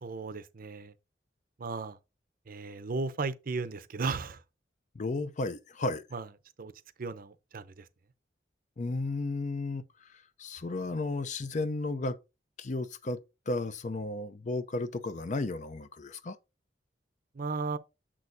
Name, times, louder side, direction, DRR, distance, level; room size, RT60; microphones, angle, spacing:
voice 1, 0.0-0.9 1.6-2.0 2.5-4.4 6.1-6.3 6.6-6.7 7.0-7.9 17.3-17.8, right 4 dB, 55° right, 0.6 m, -35 dB
voice 2, 4.9-6.0 8.8-10.1 10.4-12.2 12.6-13.2 13.5-16.4, left 2 dB, 45° left, 0.6 m, -33 dB
7.4 x 6.3 x 2.6 m
head